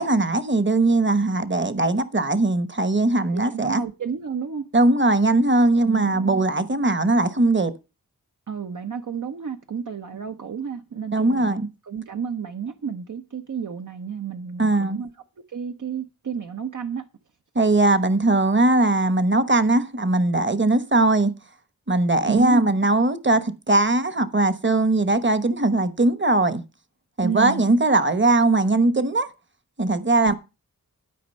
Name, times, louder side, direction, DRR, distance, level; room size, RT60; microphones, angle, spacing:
voice 1, 0.0-3.8 4.7-7.7 11.1-11.7 14.6-15.0 17.5-21.3 21.9-26.6 27.2-29.3 29.8-30.3, right 2 dB, 35° right, 1.1 m, -20 dB
voice 2, 3.3-4.7 5.8-6.4 8.5-11.6 11.8-15.1 15.5-17.0 22.3-22.7 27.2-27.6 30.2-30.3, right 7 dB, 65° right, 0.8 m, -31 dB
12.5 x 5.2 x 5.4 m
wide cardioid pair, 60°, 34 cm